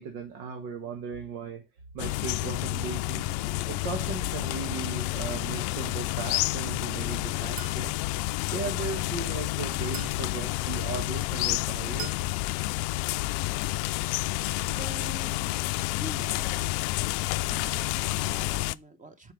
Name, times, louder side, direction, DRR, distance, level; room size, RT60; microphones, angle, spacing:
voice 1, 0.0-1.6 1.9-3.4 3.7-8.0 8.5-12.1, right 5 dB, 85° right, 1.6 m, -37 dB
sound 1, 2.0-18.7, left 19 dB, 60° left, 0.5 m, -30 dB
sound 2, 2.9-4.1 4.9-6.0 6.9-8.0 8.9-9.4 10.2-10.7, left 2 dB, 5° left, 0.8 m, -50 dB
Chink clink, 7.6-7.9 9.9-10.3 12.0-12.3, right 13 dB, 45° right, 0.5 m, -41 dB
voice 2, 14.6-15.6 16.0-16.7 17.5-19.3, right 2 dB, 15° right, 1.0 m, -45 dB
7.4 x 4.8 x 3.3 m
cardioid pair, 130°, 45 cm